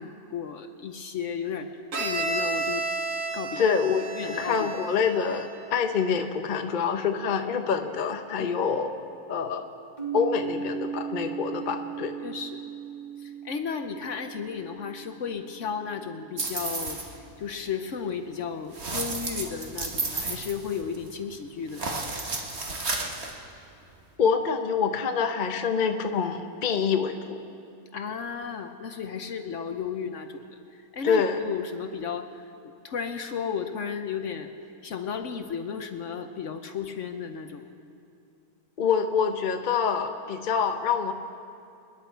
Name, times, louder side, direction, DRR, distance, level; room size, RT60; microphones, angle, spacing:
voice 1, 0.0-2.9 3.3-3.7 4.1-4.7 8.4-8.5 12.2-12.6 13.2-17.0 17.4-21.9 27.9-30.5 30.9-32.4 32.8-34.5 34.8-37.7, left 6 dB, 60° left, 7 dB, 1.0 m, -34 dB
Bowed string instrument, 1.9-5.7, right 3 dB, 75° right, 2.3 m, -32 dB
voice 2, 3.6-8.9 9.3-9.7 10.1-12.1 24.2-27.4 31.0-31.4 38.8-41.1, left 6 dB, 40° left, 6 dB, 0.7 m, -26 dB
sound 1, 10.0-17.8, right 8 dB, 30° right, 1.7 m, -38 dB
sound 2, 16.4-17.1 18.7-21.1 21.7-23.3, right 3 dB, 45° right, 1.6 m, -32 dB
27.5 x 10.5 x 4.5 m, 2.6 s
omnidirectional pair, 1.6 m